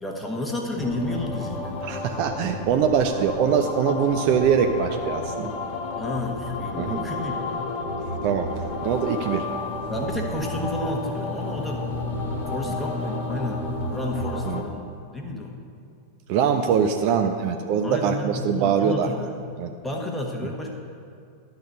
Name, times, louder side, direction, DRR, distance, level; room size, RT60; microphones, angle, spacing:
voice 1, 0.0-1.8 6.0-7.7 9.9-11.9 12.5-15.6 17.8-19.3 19.8-20.7, left 1 dB, 5° left, -1 dB, 1.3 m, -31 dB
sound 1, 0.8-14.6, left 2 dB, 35° left, 1.3 m, -32 dB
voice 2, 1.8-5.6 6.8-7.0 8.2-8.5 8.8-9.5 12.7-12.8 14.5-14.6 16.3-19.1 19.6-19.7, right 7 dB, 45° right, 6 dB, 0.4 m, -23 dB
sound 2, 8.8-14.3, left 4 dB, 65° left, 1.1 m, -36 dB
11.5 x 4.0 x 6.4 m, 2.4 s
figure-of-eight pair, 90°, 0 cm